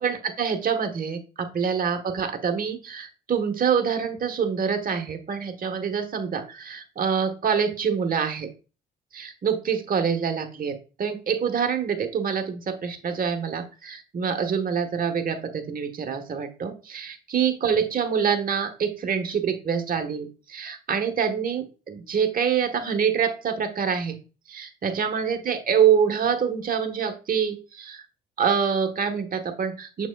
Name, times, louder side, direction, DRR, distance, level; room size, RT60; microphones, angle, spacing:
voice 1, 0.0-8.5 9.1-24.2 24.5-28.0 28.4-30.1, right 7 dB, 45° right, 6 dB, 1.3 m, -26 dB
7.3 x 6.0 x 2.3 m, 0.34 s
cardioid pair, 90°, 20 cm